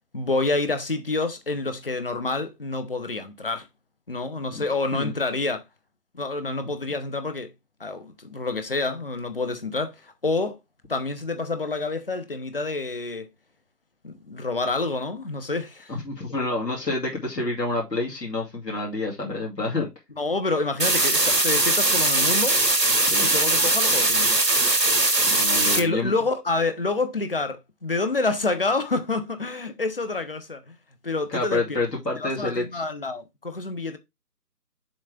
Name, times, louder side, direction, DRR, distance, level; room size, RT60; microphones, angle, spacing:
voice 1, 0.1-3.7 4.1-5.6 6.1-7.5 7.8-10.6 10.9-13.3 14.0-16.0 20.2-22.6 23.2-24.4 25.7-30.8 31.0-31.8 32.2-34.0, left 3 dB, 35° left, 0.8 m, -28 dB
voice 2, 15.9-19.9 23.0-23.3 25.3-26.1 31.3-32.8, left 2 dB, 80° left, 2.7 m, -28 dB
sound 1, 20.8-25.8, right 2 dB, 85° right, 2.0 m, -20 dB
7.1 x 3.3 x 5.0 m
figure-of-eight pair, 155°, 48 cm